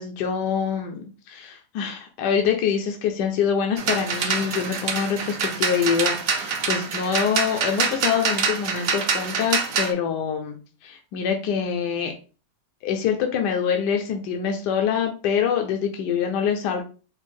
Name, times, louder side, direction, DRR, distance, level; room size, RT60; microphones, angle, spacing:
voice 1, 0.0-10.6 10.8-12.1 12.8-16.8, left 7 dB, 80° left, 3 dB, 1.2 m, -25 dB
sound 1, 3.8-9.9, right 5 dB, 75° right, 0.5 m, -26 dB
4.5 x 2.1 x 4.2 m, 0.36 s
omnidirectional pair, 1.8 m